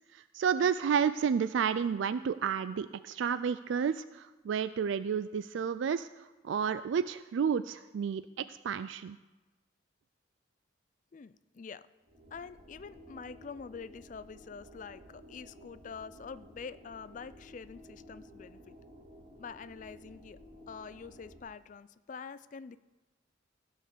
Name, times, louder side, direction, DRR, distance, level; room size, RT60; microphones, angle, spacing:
voice 1, 0.0-9.2, right 7 dB, 75° right, 14 dB, 0.3 m, -31 dB
voice 2, 11.1-11.8 12.3-18.7 19.4-20.4 20.7-22.8, left 5 dB, 40° left, 14 dB, 0.3 m, -46 dB
sound 1, 12.0-21.4, equal, 40° right, 2.4 m, -54 dB
15.0 x 5.5 x 6.7 m, 1.1 s
head